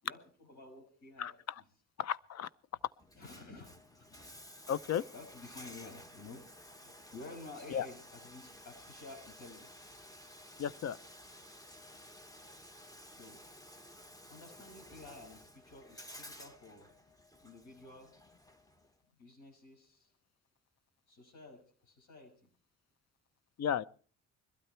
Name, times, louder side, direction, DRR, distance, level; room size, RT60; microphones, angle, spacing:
voice 1, 0.0-1.3 3.1-4.2 4.9-9.9 13.1-13.4 14.3-16.9 17.4-18.3 19.2-20.1 21.1-22.5, left 3 dB, 75° left, 6.1 m, -52 dB
voice 2, 2.0-2.5 4.7-5.0 7.7-7.9 10.6-11.0 23.6-23.8, left 9 dB, 60° left, 0.7 m, -33 dB
Bathtub (filling or washing), 3.0-18.9, equal, 10° left, 1.3 m, -54 dB
21.5 x 12.5 x 4.4 m
cardioid pair, 90°, 30 cm